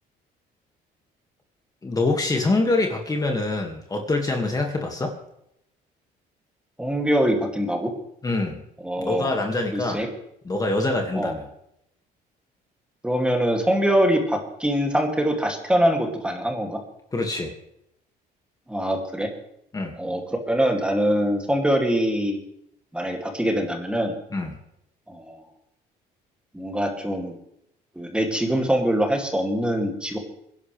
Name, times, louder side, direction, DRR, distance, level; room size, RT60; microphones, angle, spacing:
voice 1, 1.8-5.1 8.2-8.6 9.0-10.0 10.4-11.4 17.1-17.5 19.7-19.9 24.3-24.6, left 2 dB, 20° left, 2 dB, 2.1 m, -25 dB
voice 2, 6.8-7.9 8.8-9.3 9.7-10.1 11.2-11.3 13.0-16.8 18.7-19.3 20.0-22.4 22.9-24.1 25.1-25.4 26.5-27.3 28.0-30.2, equal, 5° right, 2 dB, 2.6 m, -23 dB
23.5 x 11.0 x 3.4 m, 0.77 s
cardioid pair, 110°, 17 cm